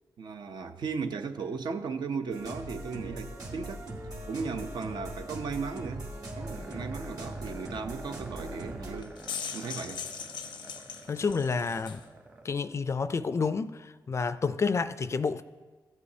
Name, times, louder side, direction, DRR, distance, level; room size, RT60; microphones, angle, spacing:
voice 1, 0.2-3.8 4.3-6.1 6.4-9.2 9.5-10.0, right 5 dB, 70° right, 0.7 m, -36 dB
sound 1, 2.3-9.0, right 1 dB, 50° right, 1.9 m, -40 dB
sound 2, 6.4-12.8, right 2 dB, 20° right, 0.9 m, -49 dB
sound 3, 9.0-12.0, left 7 dB, 90° left, 0.6 m, -39 dB
voice 2, 11.1-12.0 12.4-15.4, left 5 dB, 40° left, 0.4 m, -29 dB
15.0 x 8.3 x 2.8 m
cardioid pair, 100°, 8 cm